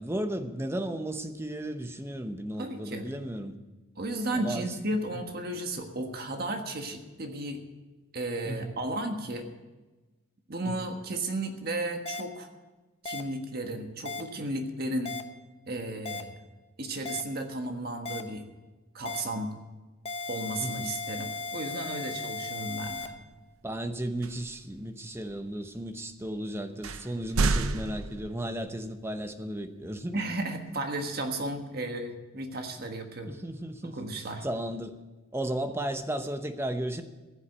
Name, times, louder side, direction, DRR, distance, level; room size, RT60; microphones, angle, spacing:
voice 1, 0.0-3.6 4.3-4.8 8.4-8.7 10.6-10.9 20.6-20.9 23.6-30.2 33.2-34.0 34.4-35.0 35.3-37.0, right 1 dB, 10° right, 8 dB, 0.8 m, -34 dB
voice 2, 2.6-3.1 4.0-7.6 8.1-9.5 10.5-12.5 13.0-15.1 15.7-16.3 16.8-18.4 18.9-19.5 20.3-23.1 30.1-33.4 33.8-34.4, right 1 dB, 45° right, 4 dB, 1.5 m, -34 dB
sound 1, 12.1-12.2 13.1-13.2 14.1-14.2 15.1-15.2 16.1-16.2 17.1-17.2 18.1-18.2 19.1-19.2 20.1-23.1, left 3 dB, 30° left, 0.8 m, -36 dB
sound 2, 22.9-23.2 24.2-24.6 25.3-25.4 26.2-26.3 26.8-28.8, right 3 dB, 85° right, 0.7 m, -30 dB
15.5 x 7.3 x 8.8 m, 1.2 s
head